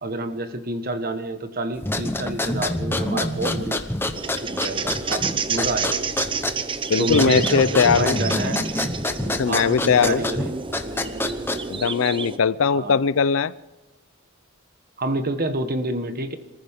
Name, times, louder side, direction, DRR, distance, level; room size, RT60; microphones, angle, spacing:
voice 1, 0.0-3.8 4.4-6.1 7.0-8.6 9.5-10.6 12.6-13.0 15.0-16.4, right 1 dB, 45° right, 8 dB, 1.4 m, -28 dB
sound 1, 1.8-11.9, left 1 dB, 10° left, 0.9 m, -27 dB
sound 2, 4.1-12.4, right 5 dB, 25° right, 0.6 m, -29 dB
voice 2, 6.9-8.2 9.3-10.2 11.7-13.5, left 6 dB, 65° left, 18 dB, 0.5 m, -20 dB
26.0 x 14.5 x 3.6 m, 1.0 s
head